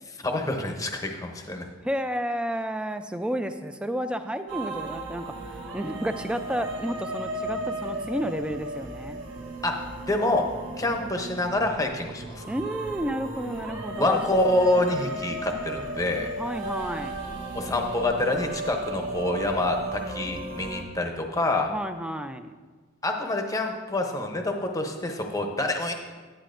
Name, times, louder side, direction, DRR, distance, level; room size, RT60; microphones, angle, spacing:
voice 1, 0.2-1.7 9.6-9.7 10.0-10.4 10.8-12.5 14.0-16.3 17.5-21.7 23.0-25.9, left 2 dB, 15° left, 3 dB, 0.7 m, -26 dB
voice 2, 1.8-9.2 12.4-14.2 16.4-17.2 21.7-22.5, equal, 5° right, 9 dB, 0.3 m, -31 dB
sound 1, 4.5-20.8, right 1 dB, 60° right, 1.2 m, -35 dB
10.0 x 9.8 x 2.5 m, 1.4 s
head